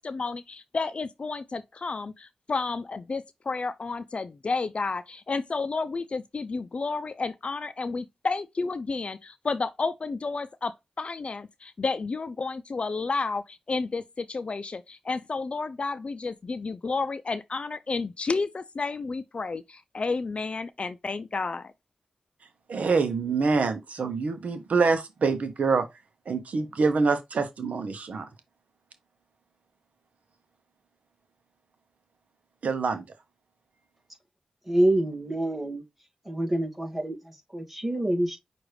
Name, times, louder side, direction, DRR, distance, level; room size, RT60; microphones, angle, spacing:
voice 1, 0.0-21.7, left 4 dB, 50° left, 0.5 m, -31 dB
voice 2, 22.7-25.9 26.3-28.2 32.6-33.0, right 4 dB, 75° right, 0.8 m, -25 dB
voice 3, 34.7-35.8 36.3-38.4, right 1 dB, 10° right, 2.2 m, -26 dB
6.1 x 2.5 x 3.2 m
cardioid pair, 50°, 2 cm